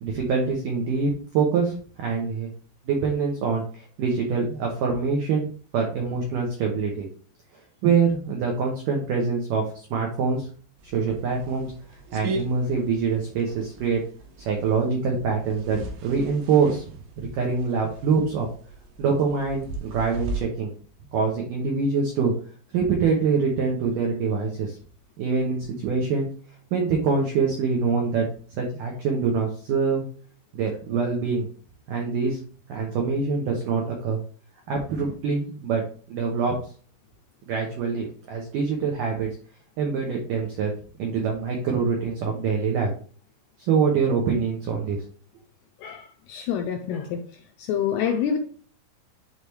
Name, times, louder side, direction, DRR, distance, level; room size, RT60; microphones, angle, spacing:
voice 1, 0.0-1.7 2.0-2.5 2.9-5.5 5.7-7.1 7.8-10.5 10.8-11.7 12.1-14.0 14.4-18.5 19.0-20.7 21.1-22.3 22.7-24.8 25.2-26.3 26.7-28.3 28.5-30.1 30.5-31.5 31.9-32.4 32.7-34.2 34.7-35.8 36.1-36.5 37.5-39.3 39.8-40.7 41.0-42.9 43.6-45.0, right 5 dB, 90° right, 0 dB, 1.9 m, -25 dB
sound 1, 10.8-20.4, right 2 dB, 70° right, 2.7 m, -38 dB
voice 2, 45.8-47.2 47.6-48.4, left 8 dB, 85° left, 4 dB, 2.3 m, -27 dB
10.5 x 3.5 x 3.2 m, 0.43 s
omnidirectional pair, 5.3 m